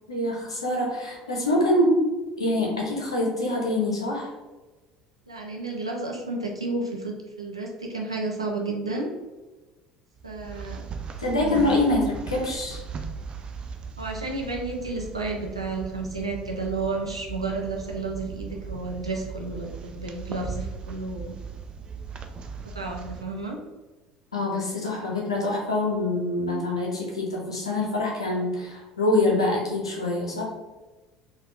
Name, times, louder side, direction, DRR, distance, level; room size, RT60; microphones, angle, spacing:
voice 1, 0.1-2.1 2.4-4.3 11.2-12.8 24.3-30.4, left 1 dB, 85° left, -2 dB, 0.8 m, -25 dB
voice 2, 5.3-9.1 10.2-10.8 11.4-11.8 14.0-21.4 22.6-23.6, right 3 dB, 90° right, 0 dB, 0.5 m, -32 dB
sound 1, 10.2-23.2, right 5 dB, 35° right, 0.4 m, -38 dB
4.2 x 2.5 x 2.7 m, 1.2 s
figure-of-eight pair, 65°, 3 cm